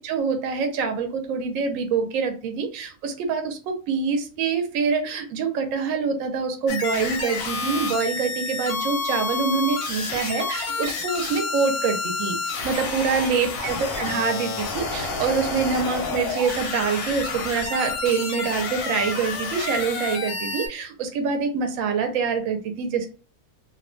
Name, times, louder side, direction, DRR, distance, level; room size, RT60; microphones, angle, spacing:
voice 1, 0.0-12.4 12.6-23.1, right 5 dB, 70° right, 6 dB, 0.9 m, -25 dB
sound 1, 6.7-20.7, left 4 dB, 90° left, 1.1 m, -29 dB
2.7 x 2.1 x 2.4 m, 0.36 s
omnidirectional pair, 1.6 m